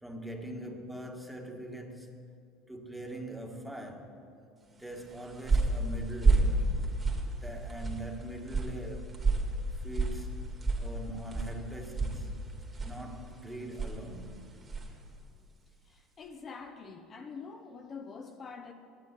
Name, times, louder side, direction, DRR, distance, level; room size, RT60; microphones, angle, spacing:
voice 1, 0.0-2.3 2.7-4.2 4.8-6.8 7.4-9.2 9.8-10.5 10.8-12.3 12.8-14.6, right 1 dB, 5° right, 1.8 m, -42 dB
sound 1, 4.9-15.0, right 3 dB, 25° right, 2.3 m, -31 dB
voice 2, 15.8-18.7, left 5 dB, 35° left, 1.0 m, -45 dB
10.0 x 9.3 x 9.7 m
hypercardioid pair, 85°, 0 cm